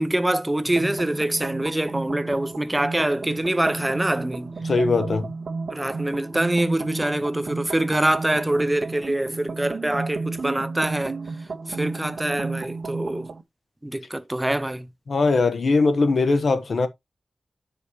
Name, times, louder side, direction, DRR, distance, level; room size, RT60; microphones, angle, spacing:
voice 1, 0.0-4.5 5.7-11.2 11.7-13.3 13.8-14.9, right 1 dB, 15° right, 0.6 m, -25 dB
sound 1, 0.7-13.4, right 4 dB, 75° right, 1.2 m, -33 dB
voice 2, 4.6-5.3 15.1-16.9, left 3 dB, 65° left, 1.0 m, -20 dB
9.7 x 5.1 x 3.0 m
wide cardioid pair, 115°, 0 cm